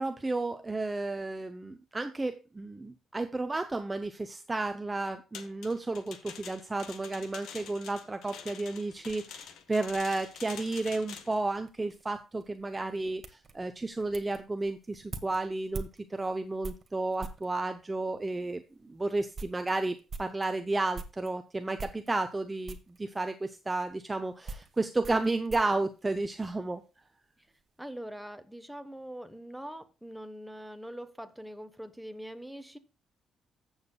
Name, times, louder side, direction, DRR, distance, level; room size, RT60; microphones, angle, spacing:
voice 1, 0.0-26.8, right 2 dB, 20° right, 8 dB, 0.6 m, -32 dB
sound 1, 5.3-11.4, left 8 dB, 85° left, 1.1 m, -46 dB
sound 2, 8.9-17.5 18.3-18.4 18.8-18.9 19.2-21.3 21.8-22.4 22.7-23.0 23.9-26.8 27.0-27.6, right 4 dB, 40° right, 1.2 m, -46 dB
voice 2, 27.8-32.8, equal, ahead, 8 dB, 1.1 m, -43 dB
15.0 x 7.2 x 2.2 m, 0.31 s
cardioid pair, 90°, 0 cm